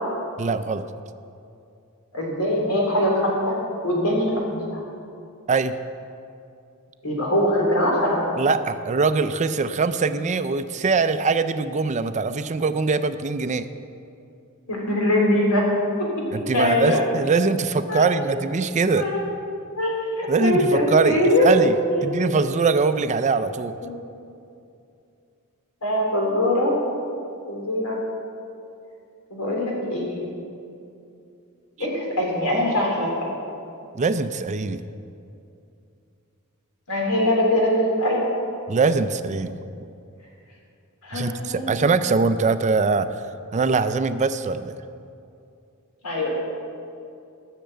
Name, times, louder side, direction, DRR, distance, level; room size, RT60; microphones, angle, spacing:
voice 1, 0.4-0.9 5.5-5.8 8.4-13.7 16.3-19.1 20.3-23.7 34.0-34.8 38.7-39.5 41.1-43.1 43.5-44.8, right 4 dB, 35° right, 11 dB, 0.4 m, -22 dB
voice 2, 2.1-3.5 3.8-4.6 7.0-8.2 14.7-15.6 16.5-17.0 17.9-18.1 19.0-19.2 19.7-19.9 20.2-21.5 21.9-22.0 23.8-23.9 25.8-26.7 27.5-28.0 29.3-30.3 31.8-33.3 36.9-38.2 41.0-41.7 46.0-46.3, left 1 dB, 90° left, -2 dB, 3.3 m, -22 dB
13.5 x 6.7 x 7.9 m, 2.6 s
head